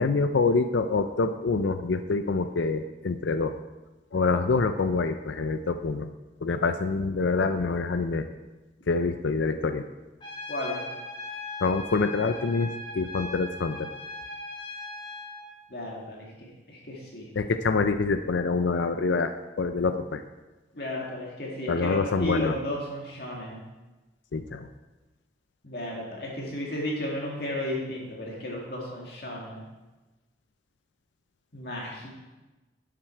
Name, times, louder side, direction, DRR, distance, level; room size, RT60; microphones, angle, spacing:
voice 1, 0.0-3.5 4.1-6.1 6.4-8.2 8.9-9.8 11.6-12.7 12.9-13.9 17.4-20.2 21.7-22.5 24.3-24.7, left 4 dB, 85° left, 9 dB, 0.5 m, -26 dB
Trumpet, 10.2-15.4, left 2 dB, 25° left, 3.5 m, -39 dB
voice 2, 10.5-10.8 15.7-17.2 20.7-23.6 25.6-29.6 31.5-32.1, left 1 dB, 60° left, -3 dB, 2.2 m, -34 dB
11.0 x 7.5 x 4.5 m, 1.1 s
head